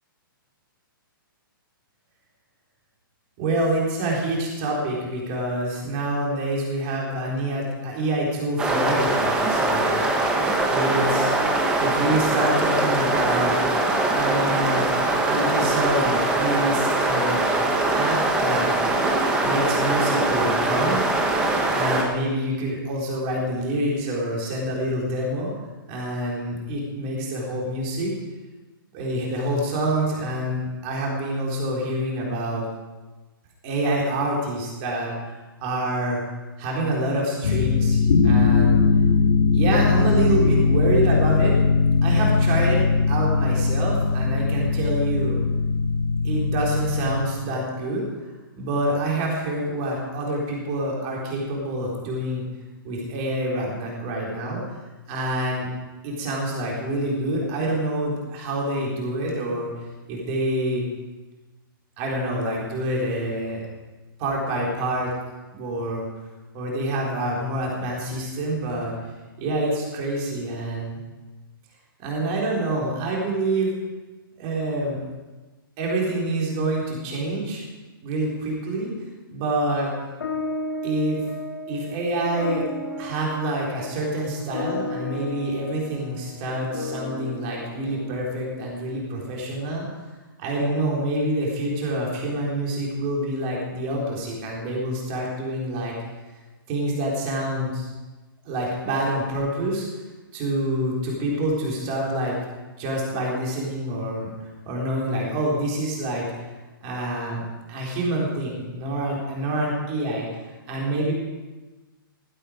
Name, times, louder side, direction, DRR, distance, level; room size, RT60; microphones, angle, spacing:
voice 1, 3.4-10.0 10.7-11.3 11.8-13.6 14.1-14.9 15.2-18.8 19.4-21.0 21.7-25.5 25.9-28.1 28.9-32.7 33.6-35.3 35.6-36.2 36.6-38.8 39.5-41.6 42.0-45.4 46.2-48.0 48.5-52.4 52.8-54.6 55.1-55.7 56.0-59.7 60.1-60.9 62.0-63.6 64.2-65.1 65.5-66.0 66.5-68.9 69.4-71.0 72.0-73.7 74.4-75.0 75.8-77.6 78.0-78.9 79.3-79.9 80.8-81.2 81.7-82.6 83.0-89.8 90.4-95.9 96.7-97.9 98.4-99.9 100.3-102.3 102.8-104.3 104.7-106.3 106.8-107.4 107.7-111.1, right 1 dB, 20° right, -3 dB, 3.9 m, -26 dB
sound 1, 8.6-22.0, right 2 dB, 5° right, 1.1 m, -22 dB
sound 2, 37.4-47.3, left 4 dB, 45° left, 2.2 m, -20 dB
sound 3, 80.2-88.9, left 2 dB, 85° left, 3.7 m, -34 dB
16.5 x 15.5 x 5.1 m, 1.2 s
hypercardioid pair, 175°, 12 cm